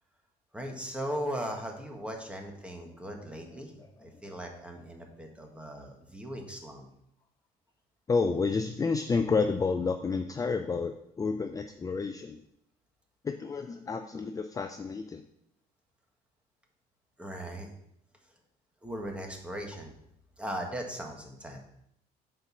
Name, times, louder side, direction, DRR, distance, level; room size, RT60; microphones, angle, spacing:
voice 1, 0.5-6.9 17.2-17.7 18.8-19.9 20.4-21.6, equal, 5° right, 2 dB, 1.5 m, -38 dB
voice 2, 8.1-12.4 13.2-15.2, left 4 dB, 20° left, 7 dB, 0.4 m, -30 dB
7.7 x 4.6 x 5.8 m, 0.77 s
cardioid pair, 110°, 17 cm